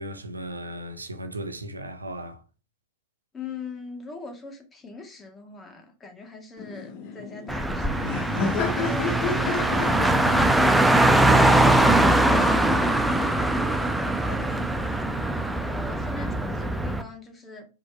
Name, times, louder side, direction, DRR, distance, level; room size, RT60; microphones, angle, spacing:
voice 1, 0.0-2.4, right 1 dB, 80° right, 0.9 m, -36 dB
voice 2, 3.3-8.2 8.6-13.9 14.3-17.7, left 3 dB, 20° left, 1.9 m, -42 dB
Laughter, 6.6-12.8, left 4 dB, 45° left, 1.3 m, -33 dB
Car, 7.5-17.0, right 1 dB, 5° right, 0.7 m, -21 dB
5.2 x 5.1 x 4.5 m
figure-of-eight pair, 90°, 0 cm